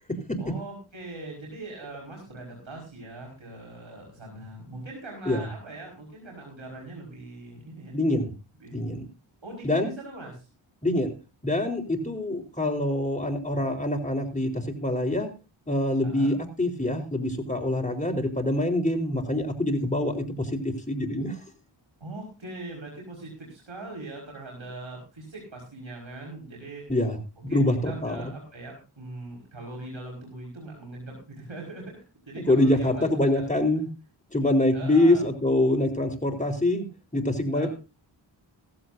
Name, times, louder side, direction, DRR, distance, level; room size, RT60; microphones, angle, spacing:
voice 1, 0.4-7.9 8.6-8.8 9.4-10.5 16.0-16.3 22.0-26.8 27.4-33.7 34.7-35.3 37.5-37.7, right 2 dB, 65° right, 0 dB, 5.3 m, -41 dB
voice 2, 7.9-8.3 8.7-9.0 9.6-9.9 10.8-11.1 11.4-15.3 15.7-21.4 26.9-28.3 32.5-33.9 34.3-36.8 37.1-37.7, left 1 dB, 15° left, 5 dB, 3.9 m, -25 dB
16.5 x 15.5 x 2.7 m, 0.31 s
cardioid pair, 50°, 49 cm